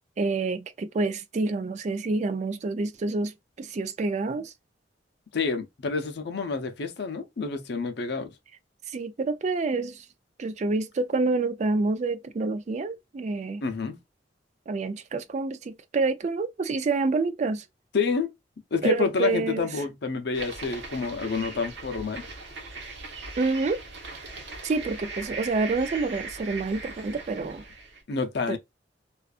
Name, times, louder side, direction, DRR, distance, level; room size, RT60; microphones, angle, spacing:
voice 1, 0.2-4.5 8.9-10.0 10.4-13.6 14.7-17.6 18.8-19.7 23.4-23.8 24.6-27.6 28.5-28.6, right 3 dB, 40° right, 0.3 m, -28 dB
voice 2, 5.3-8.3 13.6-14.0 17.9-18.3 18.7-22.2 28.1-28.6, left 4 dB, 65° left, 0.6 m, -28 dB
sound 1, 20.3-28.0, right 3 dB, 70° right, 0.9 m, -39 dB
2.4 x 2.4 x 2.3 m
head